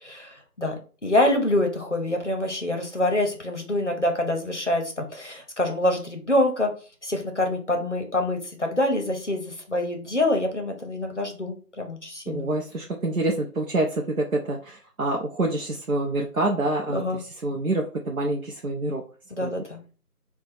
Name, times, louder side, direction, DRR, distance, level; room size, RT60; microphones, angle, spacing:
voice 1, 0.0-6.7 7.0-12.5 16.9-17.2 19.3-19.8, left 1 dB, 50° left, 4 dB, 0.7 m, -26 dB
voice 2, 12.3-19.0 19.4-19.5, right 2 dB, 65° right, 0 dB, 0.6 m, -27 dB
2.8 x 2.2 x 4.1 m, 0.39 s
figure-of-eight pair, 180°, 46 cm